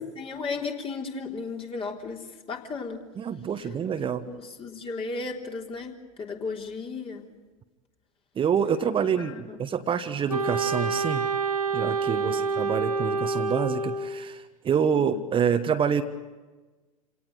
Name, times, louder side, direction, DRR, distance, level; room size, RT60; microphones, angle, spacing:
voice 1, 0.0-3.0 4.0-5.9 6.2-7.3 9.2-9.6 12.2-12.5 15.1-15.2, left 4 dB, 30° left, 2 dB, 3.6 m, -35 dB
voice 2, 3.2-4.2 8.4-11.3 11.7-16.0, right 7 dB, 30° right, 8 dB, 1.3 m, -27 dB
Wind instrument woodwind instrument, 10.3-14.3, right 4 dB, 90° right, 1.0 m, -27 dB
28.0 x 18.0 x 8.0 m, 1.3 s
figure-of-eight pair, 80°, 18 cm